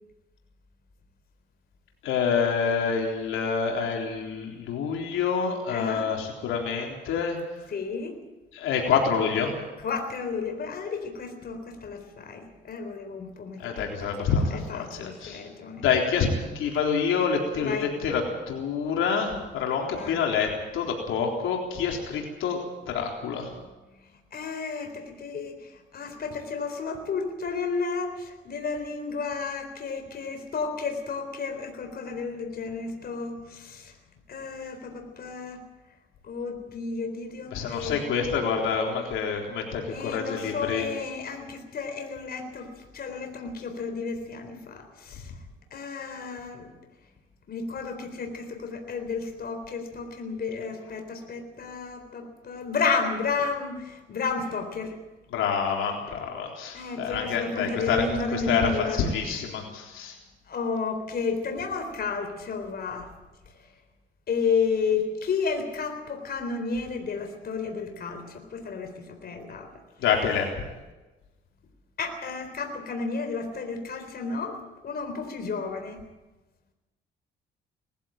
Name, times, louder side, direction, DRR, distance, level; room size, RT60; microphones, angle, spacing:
voice 1, 2.0-7.4 8.5-9.6 13.6-15.4 15.8-16.3 16.5-23.5 37.5-40.9 55.3-58.0 58.3-60.1 70.0-70.5, left 6 dB, 85° left, 1 dB, 3.9 m, -27 dB
voice 2, 5.7-6.1 7.7-8.1 9.8-15.8 17.6-17.9 19.9-20.2 23.9-33.9 34.3-35.6 36.2-38.1 39.9-45.3 45.7-46.7 47.5-55.0 56.7-59.0 60.5-63.1 64.3-69.7 72.0-74.6 74.8-76.0, left 5 dB, 50° left, 5 dB, 4.0 m, -32 dB
20.5 x 15.0 x 8.9 m, 1.1 s
cardioid pair, 90°, 20 cm